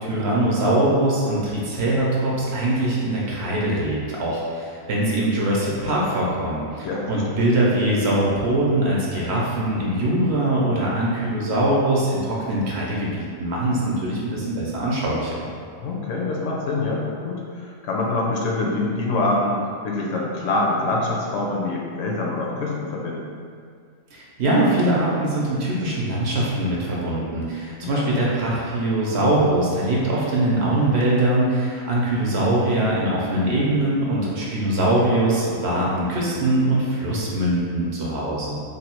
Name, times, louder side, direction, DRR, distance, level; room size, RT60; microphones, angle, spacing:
voice 1, 0.0-15.5 24.1-38.6, right 1 dB, 60° right, -5 dB, 0.8 m, -22 dB
voice 2, 6.8-7.4 15.8-23.4 27.8-28.1, left 2 dB, 70° left, -2 dB, 0.9 m, -25 dB
3.3 x 2.3 x 4.3 m, 2.2 s
omnidirectional pair, 1.4 m